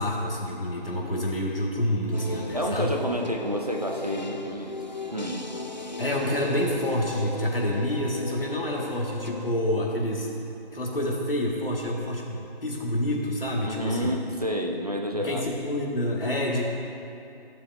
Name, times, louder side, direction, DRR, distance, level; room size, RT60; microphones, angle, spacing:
voice 1, 0.0-3.0 6.0-10.3 10.7-14.2 15.2-16.7, left 1 dB, 65° left, -2 dB, 1.9 m, -28 dB
sound 1, 2.1-9.5, left 2 dB, 45° left, 0.4 m, -37 dB
voice 2, 2.5-4.7 5.1-5.5 13.6-15.4, equal, 40° right, 1 dB, 0.7 m, -29 dB
15.5 x 7.1 x 2.7 m, 2.7 s
figure-of-eight pair, 180°, 31 cm